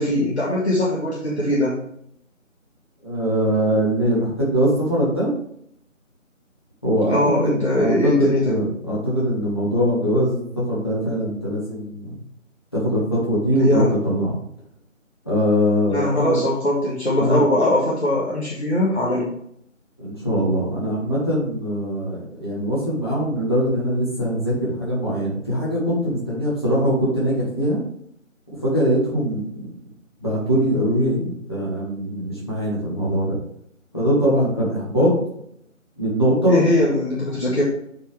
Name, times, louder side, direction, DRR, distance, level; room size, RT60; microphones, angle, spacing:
voice 1, 0.0-1.8 7.1-8.5 13.5-13.9 15.9-19.3 36.5-37.6, left 1 dB, 55° left, -5 dB, 1.6 m, -21 dB
voice 2, 3.0-5.3 6.8-7.2 7.4-12.2 12.7-14.3 15.2-16.4 17.1-17.4 20.0-27.8 28.6-29.7 30.2-33.4 33.9-35.1 36.0-36.6, equal, 20° left, -8 dB, 1.6 m, -22 dB
7.6 x 4.7 x 3.3 m, 0.71 s
figure-of-eight pair, 180°, 40 cm